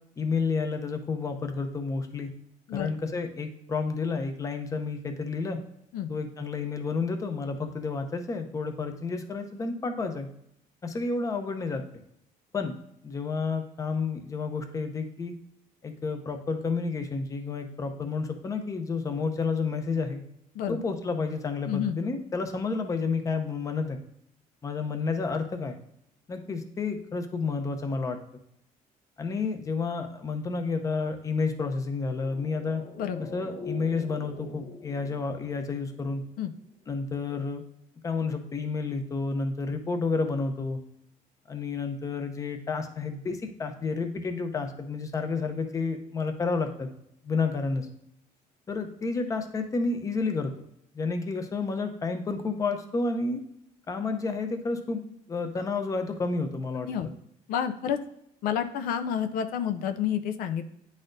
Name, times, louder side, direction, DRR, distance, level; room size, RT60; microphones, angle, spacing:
voice 1, 0.2-2.3 2.7-5.6 6.1-10.3 10.8-11.8 12.5-12.8 13.0-15.3 15.8-20.2 20.7-24.0 24.6-25.8 26.3-28.2 29.2-32.8 33.3-36.2 36.9-37.6 38.0-40.8 41.5-46.9 47.2-47.9 48.7-50.5 50.9-53.4 53.9-55.0 55.3-56.9, left 4 dB, 20° left, 7 dB, 0.6 m, -30 dB
voice 2, 21.7-22.0 33.0-33.2 36.4-36.5 56.9-57.1 57.5-58.0 58.4-60.6, left 9 dB, 80° left, 9 dB, 0.5 m, -29 dB
sound 1, 32.0-36.6 36.8-36.9, left 3 dB, 60° left, 0.9 m, -44 dB
9.8 x 4.1 x 2.6 m, 0.75 s
cardioid pair, 150°, 15 cm